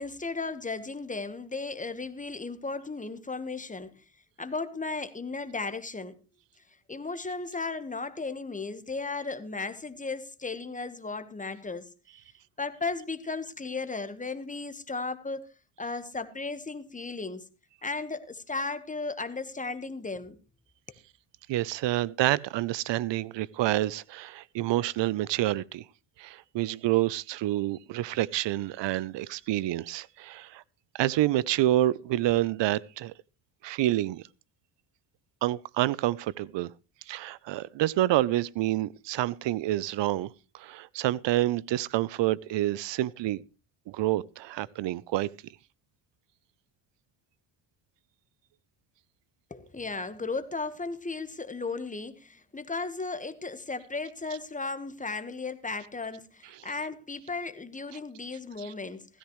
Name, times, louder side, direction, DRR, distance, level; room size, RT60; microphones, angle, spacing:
voice 1, 0.0-4.0 4.4-6.2 6.9-11.9 12.6-15.5 15.8-17.4 17.8-20.4 49.5-59.1, left 3 dB, 15° left, 1.3 m, -35 dB
voice 2, 21.5-25.9 26.2-30.6 30.9-33.1 33.6-34.2 35.4-36.7 37.1-43.4 43.9-45.3 58.6-58.7, right 15 dB, 60° right, 0.7 m, -28 dB
16.0 x 14.0 x 3.1 m
cardioid pair, 85°, 49 cm